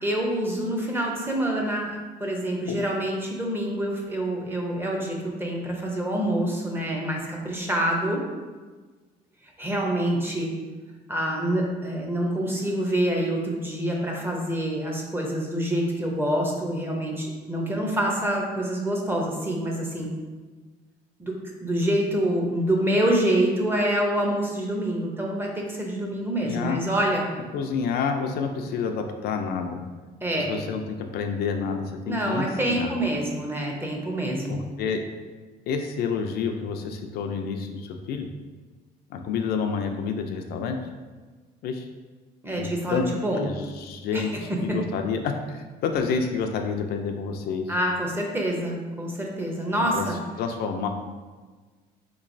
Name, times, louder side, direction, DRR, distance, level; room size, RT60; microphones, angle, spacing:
voice 1, 0.0-1.9 2.2-8.2 9.6-10.5 11.1-20.1 21.2-21.4 21.6-27.3 30.2-30.5 32.1-34.6 42.4-43.5 44.1-44.8 47.7-50.2, right 1 dB, 15° right, -1 dB, 0.6 m, -26 dB
voice 2, 26.4-26.8 27.5-29.8 30.4-30.8 31.1-32.9 34.5-35.0 35.7-38.3 39.1-40.8 41.6-41.9 42.6-43.1 43.4-47.7 49.9-50.1 50.4-50.9, left 5 dB, 70° left, 4 dB, 0.4 m, -29 dB
3.8 x 3.0 x 2.6 m, 1.4 s
cardioid pair, 110°, 17 cm